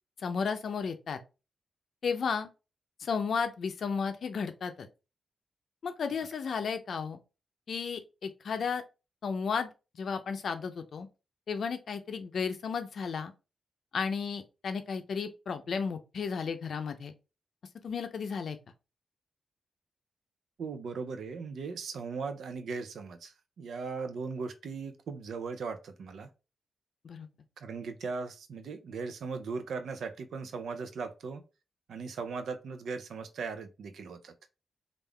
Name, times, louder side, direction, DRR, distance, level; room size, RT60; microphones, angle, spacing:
voice 1, 0.2-1.2 2.0-2.5 3.0-4.9 5.8-7.2 7.7-8.8 9.2-9.7 10.0-11.1 11.5-13.3 13.9-17.1 17.8-18.6 27.0-27.3, left 5 dB, 65° left, 0.5 m, -33 dB
voice 2, 20.6-26.3 27.6-31.4 31.9-34.3, right 4 dB, 85° right, 0.5 m, -38 dB
3.5 x 2.5 x 3.3 m
wide cardioid pair, 135°, 0 cm